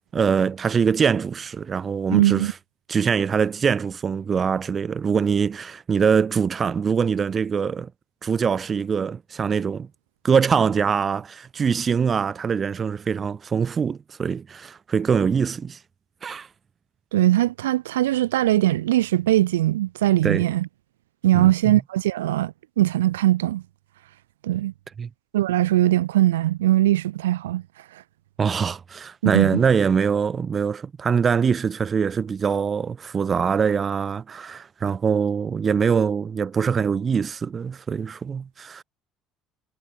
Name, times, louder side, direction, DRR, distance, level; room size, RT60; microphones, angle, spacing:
voice 1, 0.1-2.5 2.9-7.9 8.2-9.9 10.2-15.8 16.2-16.5 20.2-20.5 21.3-21.8 25.0-25.1 28.4-38.8, right 6 dB, 35° right, 6.2 m, -23 dB
voice 2, 2.1-2.5 17.1-20.7 21.2-23.6 24.4-24.7 25.3-27.6 29.2-29.6, right 14 dB, 80° right, 6.7 m, -20 dB
hypercardioid pair, 60°, 0 cm